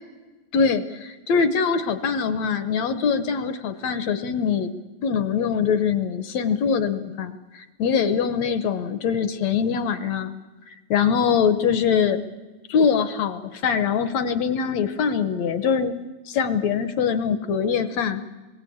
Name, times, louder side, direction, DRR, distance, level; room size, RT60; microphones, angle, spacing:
voice 1, 0.5-4.7 5.0-10.3 10.7-12.2 12.7-16.0 16.3-18.2, left 6 dB, 70° left, 11 dB, 1.7 m, -23 dB
27.5 x 21.5 x 8.6 m, 1.3 s
omnidirectional pair, 4.1 m